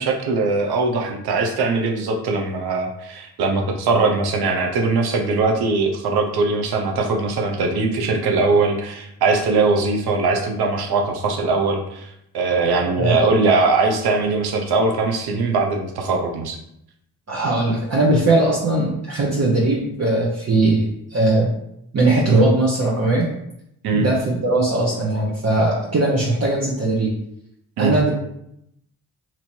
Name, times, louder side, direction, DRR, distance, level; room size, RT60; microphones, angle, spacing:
voice 1, 0.0-12.1 12.3-16.6 23.8-24.0 27.8-27.9, right 3 dB, 75° right, 2 dB, 0.8 m, -21 dB
voice 2, 17.3-21.5 21.9-23.3 23.9-27.1 27.8-28.1, right 2 dB, 40° right, -5 dB, 1.0 m, -19 dB
2.9 x 2.8 x 4.4 m, 0.77 s
supercardioid pair, 50°, 39 cm